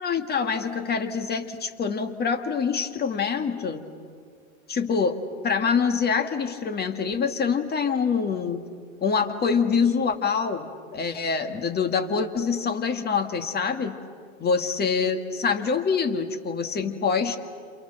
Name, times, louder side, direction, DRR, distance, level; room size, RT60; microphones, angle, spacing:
voice 1, 0.0-3.8 4.7-8.7 9.0-14.0 14.4-17.4, left 5 dB, 25° left, 7 dB, 1.8 m, -25 dB
29.0 x 28.5 x 6.6 m, 2.1 s
hypercardioid pair, 105°, 41 cm